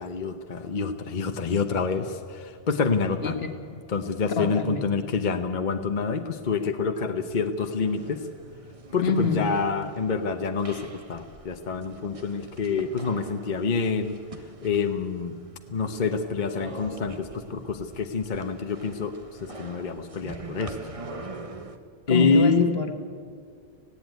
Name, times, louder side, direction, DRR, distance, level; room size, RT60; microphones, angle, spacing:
voice 1, 0.0-3.4 3.9-8.2 8.9-14.2 14.6-15.4 15.7-19.2 19.4-20.8 22.1-22.7, left 4 dB, 45° left, 6 dB, 1.0 m, -27 dB
voice 2, 4.4-4.8 9.0-9.5 22.1-22.9, left 6 dB, 65° left, 6 dB, 1.6 m, -26 dB
sound 1, 7.8-21.8, right 3 dB, 30° right, 1.2 m, -44 dB
18.5 x 16.0 x 9.3 m, 2.1 s
omnidirectional pair, 1.1 m